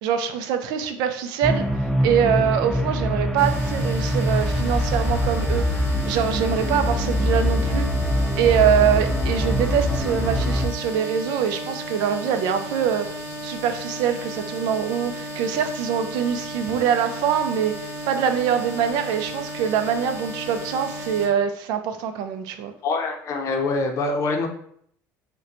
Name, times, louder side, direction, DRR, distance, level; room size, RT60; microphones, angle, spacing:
voice 1, 0.0-1.7 2.0-5.6 6.1-7.9 8.4-22.7, right 8 dB, 75° right, 8 dB, 0.4 m, -24 dB
sound 1, 1.4-10.7, equal, ahead, 0.3 m, -23 dB
sound 2, 3.4-21.3, equal, 40° right, 1.3 m, -34 dB
voice 2, 22.8-24.5, left 3 dB, 45° left, 4 dB, 0.6 m, -24 dB
3.8 x 2.2 x 2.8 m, 0.65 s
cardioid pair, 110°, 7 cm